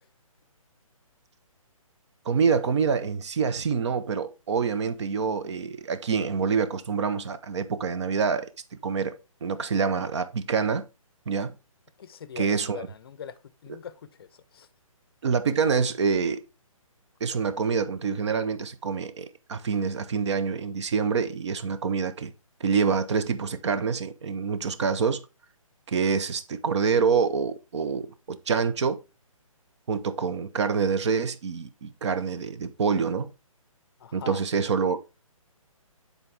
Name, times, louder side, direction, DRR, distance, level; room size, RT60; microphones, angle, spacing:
voice 1, 2.3-8.5 8.8-10.9 11.3-11.5 12.4-12.9 15.2-16.4 17.2-22.3 22.6-25.2 25.9-29.0 29.9-33.3 34.1-35.0, right 5 dB, 55° right, 0.7 m, -26 dB
voice 2, 12.0-14.7 34.0-34.4, left 8 dB, 45° left, 0.5 m, -42 dB
8.6 x 4.0 x 3.3 m
hypercardioid pair, 155°, 18 cm